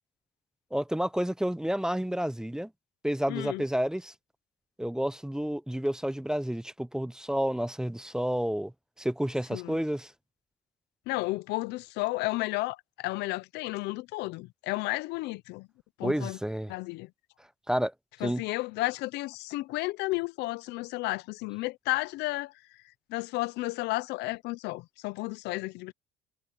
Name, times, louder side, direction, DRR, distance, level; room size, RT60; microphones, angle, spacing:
voice 1, 0.7-2.7 3.0-4.1 4.8-8.7 9.0-10.1 16.0-16.7 17.7-17.9 18.2-18.4, equal, 5° right, 0.6 m, -30 dB
voice 2, 3.3-3.6 9.5-9.8 11.1-15.7 16.0-16.4 16.7-17.1 18.2-22.5 23.1-25.9, left 21 dB, 90° left, 0.6 m, -32 dB
cardioid pair, 110°, 17 cm